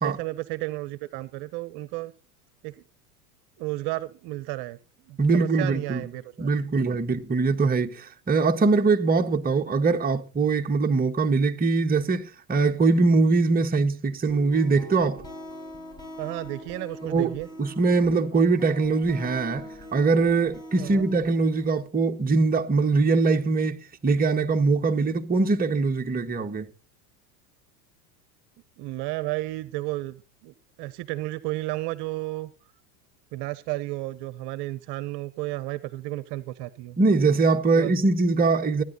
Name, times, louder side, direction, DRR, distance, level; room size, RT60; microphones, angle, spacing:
voice 1, 0.0-2.1 2.6-2.7 3.6-4.8 5.1-6.6 16.2-17.5 20.8-21.0 28.8-32.5 33.3-37.0 37.7-37.9 38.8-38.9, right 18 dB, 55° right, 1.1 m, -33 dB
voice 2, 5.2-6.1 6.4-15.2 17.1-26.7 37.0-38.8, right 4 dB, 20° right, 1.6 m, -22 dB
sound 1, 14.3-21.8, equal, 10° left, 7.2 m, -43 dB
16.0 x 10.5 x 4.1 m
hypercardioid pair, 95°, 49 cm